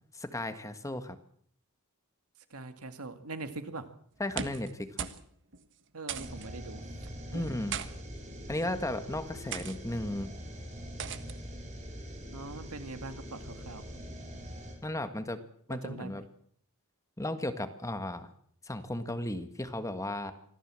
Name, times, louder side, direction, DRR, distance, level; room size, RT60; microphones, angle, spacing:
voice 1, 0.2-1.2 4.2-5.1 7.3-7.8 8.5-10.3 14.8-15.4 15.7-16.2 17.2-18.3 18.7-20.3, left 1 dB, 15° left, 9 dB, 1.6 m, -35 dB
voice 2, 2.5-3.9 5.9-6.8 7.3-7.6 12.3-13.8 15.8-16.1, right 3 dB, 75° right, 8 dB, 2.2 m, -42 dB
sound 1, 4.2-4.7 5.0-5.2 5.5-5.6 6.1-6.5 7.4-7.9 8.7-8.9 9.5-9.8 11.0-11.4, right 7 dB, 55° right, 1.5 m, -38 dB
sound 2, 6.1-14.8, equal, 35° right, 6.1 m, -43 dB
24.5 x 16.0 x 7.6 m, 0.64 s
head